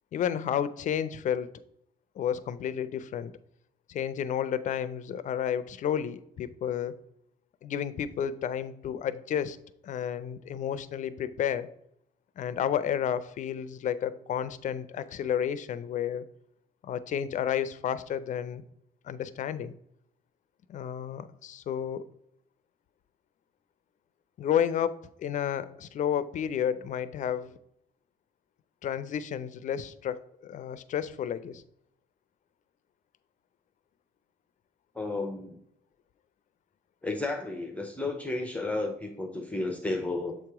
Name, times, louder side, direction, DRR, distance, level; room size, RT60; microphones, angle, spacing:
voice 1, 0.1-1.5 2.2-3.3 3.9-6.9 7.6-9.6 9.8-11.7 12.4-16.2 16.8-18.6 19.0-19.7 20.7-22.0 24.4-27.6 28.8-31.6, left 9 dB, 50° left, 15 dB, 0.5 m, -31 dB
voice 2, 35.0-35.6 37.0-40.4, left 2 dB, 10° left, 4 dB, 0.6 m, -32 dB
7.3 x 2.9 x 4.7 m, 0.75 s
cardioid pair, 110°, 17 cm